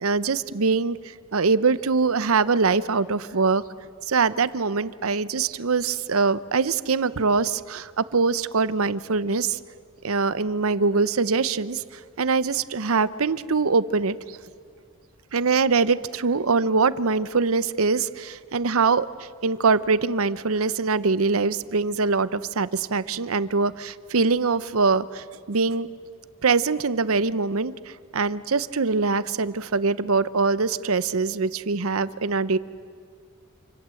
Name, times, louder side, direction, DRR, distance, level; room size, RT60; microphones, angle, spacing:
voice 1, 0.0-1.0 1.3-3.6 4.0-9.6 10.0-11.8 12.2-14.4 15.3-25.9 26.4-32.6, right 4 dB, 80° right, 16 dB, 0.8 m, -23 dB
27.5 x 26.0 x 7.7 m, 2.2 s
head